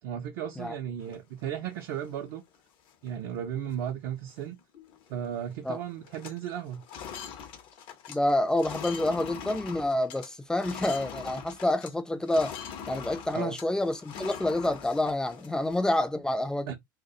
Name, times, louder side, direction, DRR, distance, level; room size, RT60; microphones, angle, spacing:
voice 1, 0.0-2.4 3.0-4.6 5.1-6.8 13.3-13.6 16.7-16.8, right 9 dB, 55° right, 0.5 m, -35 dB
sound 1, 1.0-2.1 2.5-2.6 2.9-3.3 3.7-3.9 4.2-5.3 5.5-5.8 6.0-11.9 12.2-16.1, left 7 dB, 45° left, 0.6 m, -43 dB
voice 2, 8.1-12.5 12.9-16.7, left 1 dB, 5° left, 0.4 m, -28 dB
2.2 x 2.1 x 2.6 m
figure-of-eight pair, 75°, 11 cm